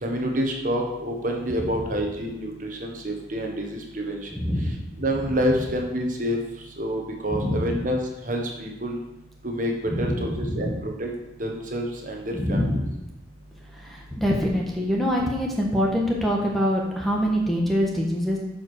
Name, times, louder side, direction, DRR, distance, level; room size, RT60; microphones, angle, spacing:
voice 1, 0.0-4.3 5.0-6.4 6.8-8.0 8.2-9.0 9.4-11.1 11.4-12.8 14.3-14.4, equal, 45° right, 1 dB, 1.4 m, -28 dB
voice 2, 4.3-4.8 7.3-7.8 9.9-10.8 12.3-12.9 13.8-18.4, equal, ahead, -2 dB, 1.5 m, -25 dB
9.8 x 5.2 x 6.4 m, 0.93 s
head